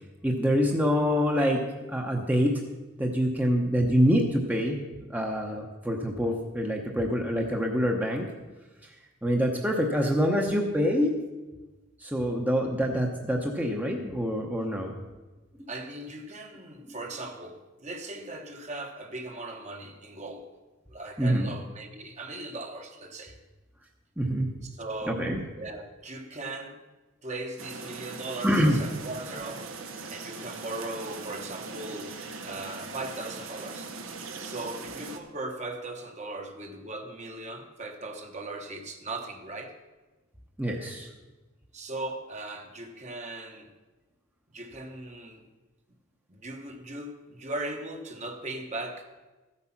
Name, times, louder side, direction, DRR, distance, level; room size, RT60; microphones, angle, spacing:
voice 1, 0.2-1.6 1.9-2.6 3.0-4.8 5.1-8.3 9.2-11.1 12.0-14.9 21.2-21.5 24.2-24.5 25.1-25.4 28.4-28.8 40.6-41.1, equal, 10° right, 1 dB, 0.9 m, -25 dB
voice 2, 15.7-20.5 20.9-23.4 24.6-25.3 25.6-26.8 27.2-29.7 30.1-32.2 32.4-33.9 34.4-39.8 41.7-43.7 44.5-45.5 46.3-49.1, right 2 dB, 35° right, 4 dB, 1.2 m, -38 dB
sound 1, 27.6-35.2, right 4 dB, 75° right, 1.2 m, -40 dB
14.5 x 8.3 x 5.9 m, 1.2 s
head